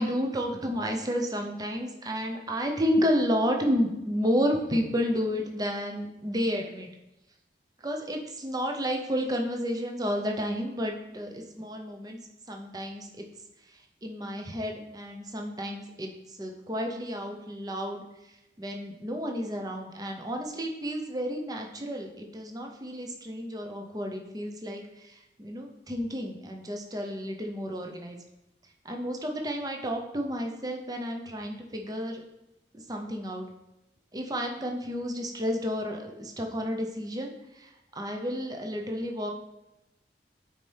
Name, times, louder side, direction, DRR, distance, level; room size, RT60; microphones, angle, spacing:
voice 1, 0.0-6.9 7.8-12.2 12.5-13.2 13.7-18.0 18.6-28.2 28.8-32.2 32.7-33.5 34.1-39.3, equal, 20° right, 2 dB, 0.7 m, -31 dB
9.0 x 4.2 x 3.4 m, 0.91 s
head